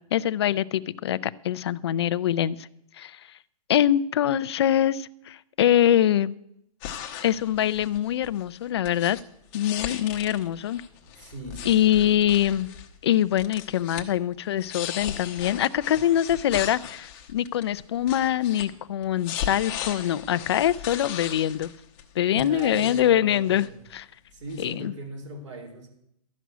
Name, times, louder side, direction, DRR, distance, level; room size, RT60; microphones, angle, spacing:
voice 1, 0.1-2.7 3.0-3.2 3.7-6.4 7.2-9.2 9.5-10.8 11.7-12.7 13.0-21.7 22.2-24.1 24.6-24.9, left 11 dB, 45° left, 16 dB, 0.4 m, -24 dB
sound 1, 6.8-8.4 8.9-9.2 9.5-12.9 13.1-14.0 14.3-18.7 19.0-22.0 22.4-23.0 23.3-23.9 24.5-24.6, left 9 dB, 25° left, 0.9 m, -37 dB
voice 2, 11.2-12.4 22.3-23.8 24.3-25.9, right 1 dB, 55° right, 4 dB, 3.5 m, -39 dB
12.5 x 6.2 x 9.2 m, 0.77 s
hypercardioid pair, 165°, 19 cm